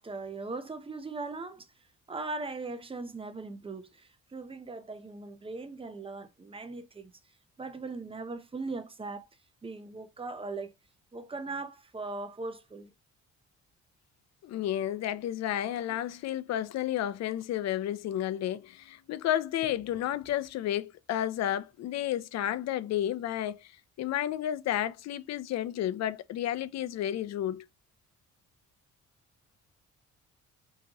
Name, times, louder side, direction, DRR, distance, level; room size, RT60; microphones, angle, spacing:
voice 1, 0.0-1.7 2.1-7.1 7.6-9.3 9.6-10.7 11.1-12.9, right 3 dB, 20° right, 0.7 m, -39 dB
voice 2, 14.4-23.7 24.0-27.6, left 11 dB, 60° left, 0.5 m, -31 dB
5.0 x 2.9 x 2.9 m
cardioid pair, 90°, 30 cm